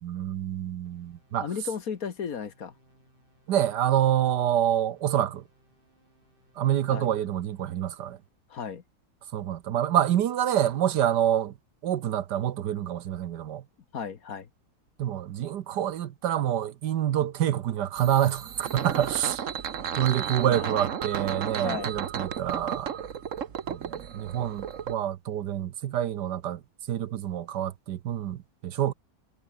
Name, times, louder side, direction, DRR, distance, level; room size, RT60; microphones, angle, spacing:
voice 1, 0.0-1.5 3.5-5.4 6.6-8.2 9.3-11.5 11.8-13.6 15.0-19.5 20.0-23.1 23.7-26.6 26.9-28.9, right 11 dB, 70° right, 1.4 m, -27 dB
sound 1, 0.8-8.4, right 1 dB, 25° right, 7.7 m, -65 dB
voice 2, 1.4-2.7 6.9-7.1 8.5-8.8 13.9-14.5 20.5-20.8 21.6-22.0, left 6 dB, 55° left, 1.7 m, -35 dB
sound 2, 18.0-24.9, right 8 dB, 50° right, 1.3 m, -34 dB
omnidirectional pair, 2.0 m